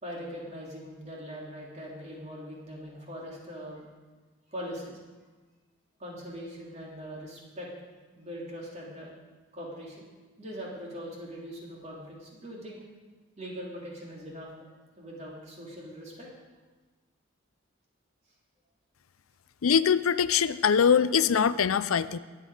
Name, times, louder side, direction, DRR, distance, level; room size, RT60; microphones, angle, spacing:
voice 1, 0.0-3.8 4.5-5.0 6.0-7.7 8.1-9.1 9.5-10.0 10.4-12.8 13.4-14.7 15.0-16.3, equal, 30° right, -3 dB, 3.2 m, -41 dB
voice 2, 19.6-22.2, left 7 dB, 85° left, 15 dB, 0.5 m, -23 dB
22.0 x 8.3 x 4.9 m, 1.3 s
head